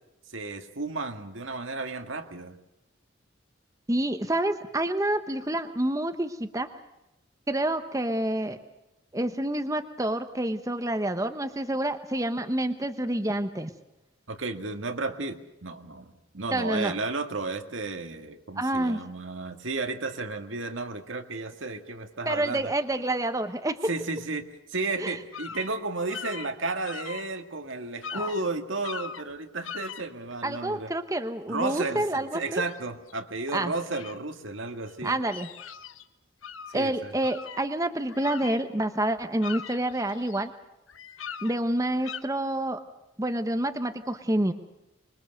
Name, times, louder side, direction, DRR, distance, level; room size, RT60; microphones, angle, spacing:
voice 1, 0.3-2.6 14.3-22.7 23.8-30.9 31.5-35.2 36.7-37.1, right 3 dB, 75° right, 6 dB, 1.9 m, -33 dB
voice 2, 3.9-6.7 7.5-8.6 9.1-13.7 16.5-17.0 18.6-19.0 22.3-23.8 25.0-25.2 28.1-28.3 30.4-32.6 33.5-33.7 35.0-35.5 36.7-40.5 41.4-42.8 43.2-44.5, right 1 dB, 15° right, 8 dB, 1.0 m, -28 dB
sound 1, 25.3-25.7 26.1-27.3 27.7-27.8 28.0-28.4 28.8-29.3 29.6-30.0 32.7-32.8 33.1-33.2 33.9-34.2 34.9-36.0 36.4-36.8 37.2-38.9 39.2-40.5 40.9-41.5 42.0-42.2, left 6 dB, 85° left, 1.3 m, -40 dB
25.5 x 22.0 x 6.7 m, 0.94 s
head